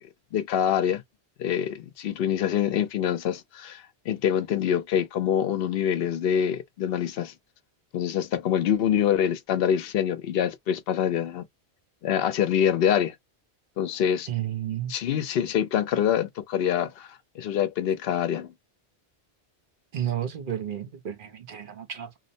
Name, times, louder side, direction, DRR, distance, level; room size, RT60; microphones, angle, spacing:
voice 1, 0.3-1.0 1.4-7.3 7.9-11.5 12.0-13.1 13.8-14.3 14.9-17.1 17.4-18.5, left 9 dB, 65° left, 0.8 m, -25 dB
voice 2, 14.3-14.9 19.9-22.2, right 11 dB, 55° right, 0.8 m, -32 dB
2.7 x 2.1 x 2.6 m
omnidirectional pair, 1.1 m